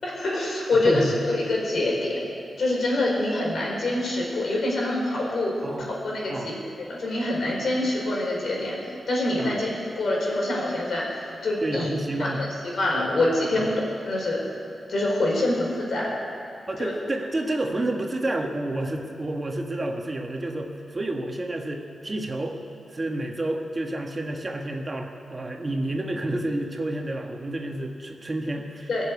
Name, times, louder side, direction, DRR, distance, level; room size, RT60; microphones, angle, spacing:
voice 1, 0.0-2.2 2.6-6.5 6.9-11.9 12.2-13.8 14.1-14.5 14.9-16.1 16.8-16.9 28.9-29.0, left 2 dB, 65° left, -3 dB, 4.6 m, -25 dB
voice 2, 0.8-1.2 5.6-5.9 6.3-6.5 9.4-9.6 11.6-12.4 13.6-13.7 16.7-22.6 22.9-28.9, right 1 dB, 30° right, 2 dB, 1.4 m, -29 dB
20.5 x 7.3 x 8.3 m, 2.8 s
wide cardioid pair, 100°, 0 cm